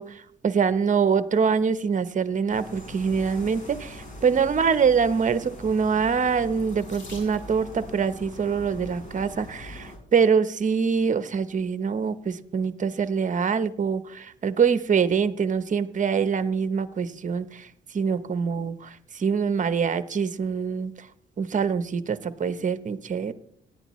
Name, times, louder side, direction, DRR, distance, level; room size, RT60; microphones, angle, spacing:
voice 1, 0.0-17.7 17.9-21.1 21.4-23.3, right 6 dB, 40° right, 13 dB, 0.9 m, -24 dB
sound 1, 2.5-10.0, left 1 dB, 40° left, 4.2 m, -42 dB
Water tap faucet / Sink (filling or washing), 6.6-7.8 8.9-9.3 9.9-10.0 10.4-10.5, left 3 dB, 70° left, 4.6 m, -48 dB
18.5 x 11.0 x 3.2 m, 0.66 s
cardioid pair, 90°, 20 cm